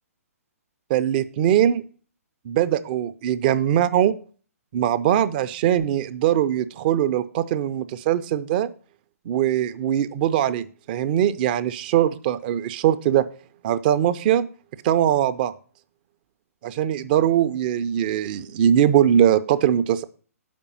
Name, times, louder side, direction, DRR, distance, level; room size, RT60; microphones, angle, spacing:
voice 1, 0.9-1.8 2.4-4.1 4.7-8.7 9.3-13.3 13.6-14.4 14.8-15.5 16.6-20.0, right 10 dB, 35° right, 12 dB, 0.5 m, -21 dB
6.9 x 5.2 x 6.9 m, 0.42 s
figure-of-eight pair, 130°, 8 cm